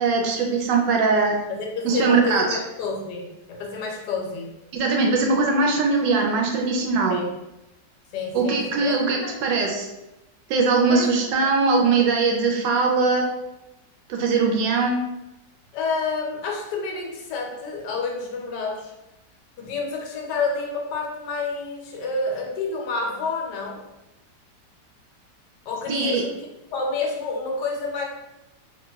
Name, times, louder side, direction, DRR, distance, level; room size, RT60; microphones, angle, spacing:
voice 1, 0.0-1.3 1.8-2.6 4.7-7.2 8.3-9.9 10.5-13.2 14.1-15.0 25.9-26.2, right 4 dB, 85° right, 1 dB, 1.2 m, -21 dB
voice 2, 1.5-4.5 7.1-7.3 8.1-9.4 10.9-11.1 15.7-18.9 19.6-23.9 25.7-26.4 26.7-28.0, left 4 dB, 75° left, 0 dB, 1.2 m, -29 dB
3.1 x 2.5 x 2.2 m, 0.94 s
omnidirectional pair, 1.9 m